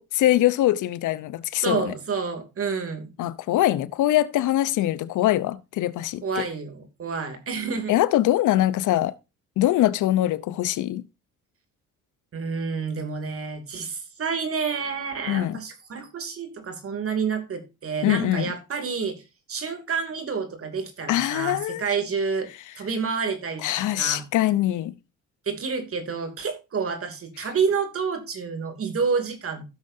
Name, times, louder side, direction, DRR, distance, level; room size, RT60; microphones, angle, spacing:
voice 1, 0.0-1.9 3.2-6.4 7.9-9.1 9.6-11.0 15.3-15.6 18.0-18.5 21.1-21.8 23.6-24.9, left 14 dB, 80° left, 0.8 m, -23 dB
voice 2, 1.6-3.1 6.2-7.9 12.3-19.2 19.5-22.5 22.8-24.2 25.5-29.6, right 5 dB, 50° right, 2.8 m, -29 dB
16.0 x 6.5 x 2.7 m
cardioid pair, 90°, 30 cm